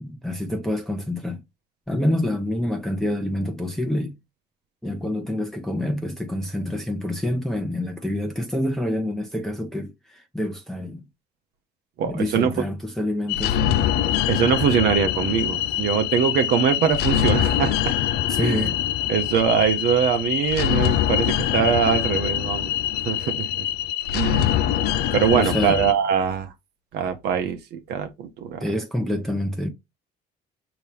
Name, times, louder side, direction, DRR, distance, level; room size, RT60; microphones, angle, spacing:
voice 1, 0.0-1.4 1.9-4.2 4.8-11.1 12.0-13.6 18.3-18.7 25.3-25.8 28.6-29.7, left 1 dB, ahead, 0.7 m, -27 dB
voice 2, 12.0-12.5 14.3-18.0 18.4-18.7 19.1-22.7 23.0-23.6 24.1-24.5 25.1-26.5 26.9-28.6, right 7 dB, 75° right, 0.8 m, -22 dB
sound 1, 13.3-25.9, left 11 dB, 75° left, 0.4 m, -24 dB
5.4 x 2.9 x 3.2 m
cardioid pair, 110°, 17 cm